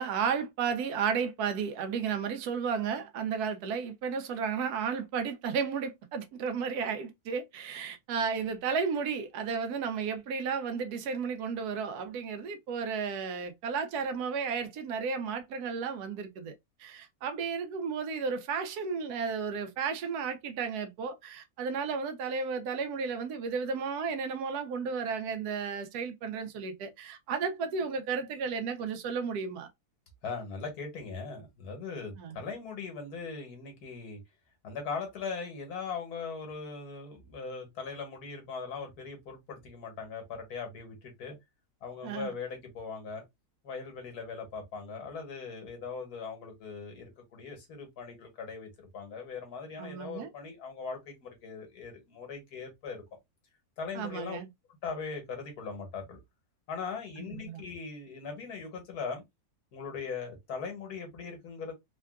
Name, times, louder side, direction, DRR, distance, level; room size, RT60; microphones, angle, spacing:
voice 1, 0.0-16.5 16.8-29.7 32.2-32.4 42.0-42.3 49.8-50.3 53.9-54.5 57.2-57.6, right 6 dB, 85° right, 1.2 m, -33 dB
voice 2, 30.2-34.2 34.6-41.4 41.8-43.2 43.6-53.0 53.8-54.4 54.8-56.2 56.7-59.2 59.7-61.7, left 5 dB, 85° left, 1.6 m, -40 dB
3.5 x 2.3 x 2.3 m
omnidirectional pair, 1.6 m